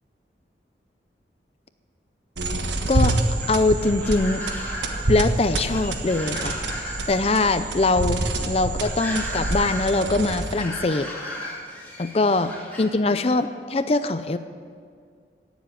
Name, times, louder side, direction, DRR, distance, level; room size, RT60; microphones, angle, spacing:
sound 1, 2.4-10.8, right 2 dB, 90° right, 1.4 m, -27 dB
sound 2, 2.9-12.9, left 1 dB, 10° left, 2.3 m, -36 dB
voice 1, 3.5-4.4 5.1-11.1 12.0-12.5 12.8-14.4, left 2 dB, 35° left, 11 dB, 0.4 m, -22 dB
18.0 x 7.3 x 8.6 m, 2.1 s
head